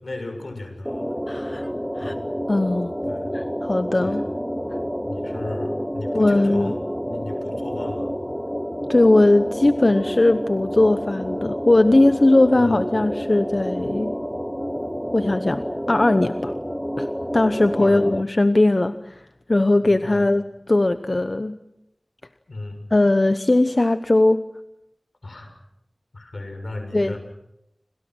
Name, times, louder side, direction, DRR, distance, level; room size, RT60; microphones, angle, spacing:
voice 1, 0.0-1.2 2.0-2.2 3.1-3.3 4.0-4.2 5.0-6.8 7.1-8.1 12.5-12.8 17.6-18.1 19.8-20.3 22.5-22.8 25.2-25.6 26.1-27.2, left 2 dB, 75° left, 5 dB, 7.0 m, -35 dB
sound 1, 0.8-18.2, equal, 5° left, 0.9 m, -29 dB
voice 2, 1.3-1.6 2.0-2.2 2.5-2.9 3.3-4.2 6.1-6.7 8.9-14.1 15.1-15.6 15.9-16.5 17.0-17.1 17.3-21.6 22.9-24.5 26.9-27.2, left 2 dB, 50° left, 11 dB, 0.9 m, -19 dB
30.0 x 26.0 x 6.3 m, 0.85 s
wide cardioid pair, 40°, 0 cm